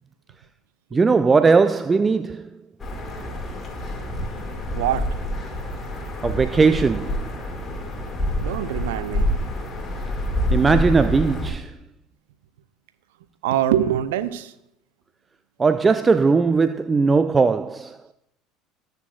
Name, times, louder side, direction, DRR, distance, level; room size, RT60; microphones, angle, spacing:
voice 1, 0.9-2.5 6.2-7.3 10.5-11.8 15.6-18.0, right 4 dB, 20° right, 0.3 m, -19 dB
sound 1, 2.8-11.5, equal, 25° left, 2.0 m, -27 dB
voice 2, 4.7-5.1 8.4-9.3 13.4-14.5, right 11 dB, 65° right, 0.6 m, -24 dB
19.0 x 6.7 x 2.4 m
figure-of-eight pair, 65°, 0 cm